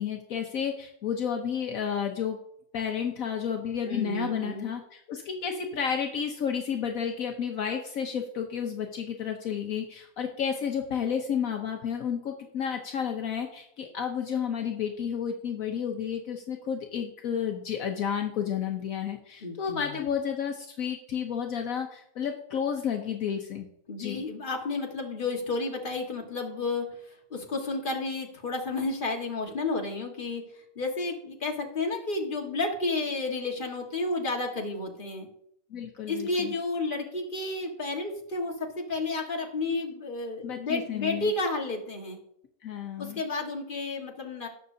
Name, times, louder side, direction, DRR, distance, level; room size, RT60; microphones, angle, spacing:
voice 1, 0.0-2.4 2.7-23.7 24.0-24.2 35.7-36.5 40.4-41.3 42.6-43.2, left 7 dB, 70° left, 3 dB, 1.3 m, -31 dB
voice 2, 3.9-4.7 19.4-20.0 23.9-30.4 30.8-35.3 36.1-42.2 43.0-44.5, left 3 dB, 35° left, 1 dB, 1.8 m, -31 dB
19.0 x 6.5 x 2.8 m, 0.71 s
omnidirectional pair, 1.5 m